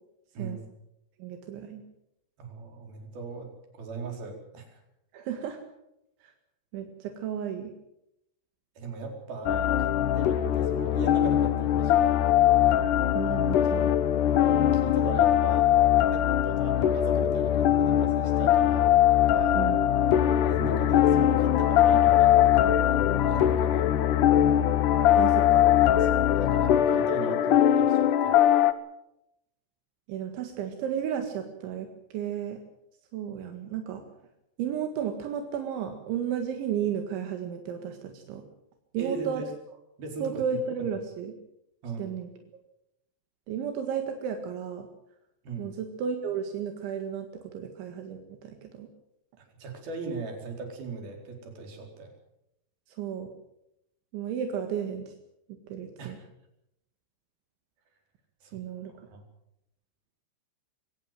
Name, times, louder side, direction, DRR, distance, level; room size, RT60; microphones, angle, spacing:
voice 1, 1.2-1.8 5.1-5.6 6.2-6.3 6.7-7.7 13.1-13.9 19.6-19.9 25.2-25.7 30.1-31.9 32.1-32.6 33.1-34.0 34.6-38.4 38.9-39.4 40.2-41.3 42.0-42.3 43.5-44.9 45.6-48.9 52.9-53.3 54.1-55.1 55.7-56.2 58.5-59.1, right 8 dB, 85° right, 5 dB, 4.2 m, -33 dB
voice 2, 2.4-4.8 8.8-12.2 14.3-15.7 16.1-19.7 20.4-23.9 26.0-28.5 39.0-39.5 40.0-40.9 41.8-42.1 45.4-45.7 49.4-52.1 56.0-56.2 58.4-58.6 59.1-59.2, right 4 dB, 55° right, 3 dB, 6.0 m, -39 dB
sound 1, 9.5-28.7, left 11 dB, 85° left, 1.7 m, -22 dB
24.0 x 17.5 x 7.5 m, 0.83 s
omnidirectional pair, 5.2 m